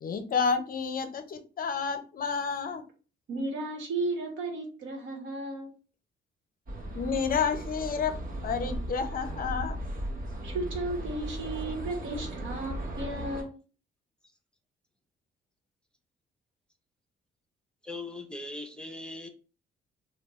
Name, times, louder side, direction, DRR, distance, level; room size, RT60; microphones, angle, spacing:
voice 1, 0.0-2.8 6.9-9.8, left 5 dB, 45° left, 9 dB, 0.5 m, -30 dB
voice 2, 3.3-5.7 10.4-13.5, right 2 dB, 75° right, 2 dB, 1.2 m, -34 dB
sound 1, 6.7-13.4, right 1 dB, 45° right, 1.0 m, -37 dB
voice 3, 17.8-19.3, left 2 dB, 5° left, 4 dB, 0.6 m, -39 dB
3.4 x 2.3 x 3.0 m, 0.36 s
cardioid pair, 90°, 20 cm